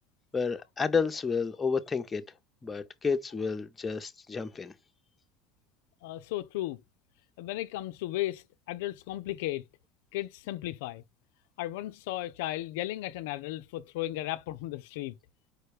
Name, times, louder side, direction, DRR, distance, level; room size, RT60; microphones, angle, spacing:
voice 1, 0.3-2.2 2.6-4.7, left 5 dB, 20° left, 0.6 m, -30 dB
voice 2, 6.0-6.8 7.4-9.6 10.1-11.0 11.6-15.2, left 15 dB, 80° left, 0.3 m, -35 dB
4.8 x 2.2 x 4.8 m
supercardioid pair, 95°, 0 cm